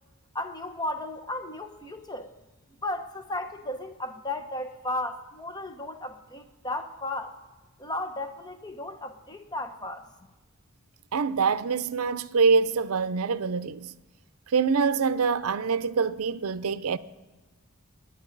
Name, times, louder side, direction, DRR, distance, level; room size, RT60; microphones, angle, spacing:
voice 1, 0.3-2.3 2.8-7.3 7.8-10.0, left 1 dB, 20° left, 0.9 m, -34 dB
voice 2, 11.1-13.9 14.5-17.0, right 5 dB, 80° right, 0.6 m, -25 dB
26.5 x 10.0 x 4.0 m
head